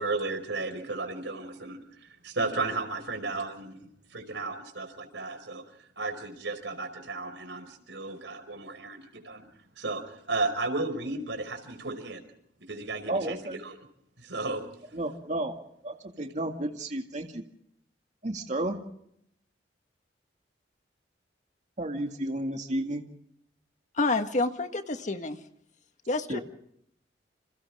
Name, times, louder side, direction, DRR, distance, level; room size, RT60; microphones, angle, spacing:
voice 1, 0.0-5.6 6.0-9.0 9.2-9.4 9.8-12.2 12.7-13.8 14.2-14.6, right 3 dB, 80° right, 7 dB, 5.2 m, -34 dB
voice 2, 13.1-13.6 14.9-15.5 15.8-17.4 18.2-18.8 21.8-23.0 26.3-26.4, right 1 dB, 40° right, 3 dB, 2.2 m, -32 dB
voice 3, 23.9-25.4 26.1-26.4, left 3 dB, 45° left, 7 dB, 1.7 m, -28 dB
29.5 x 27.5 x 3.7 m, 0.71 s
head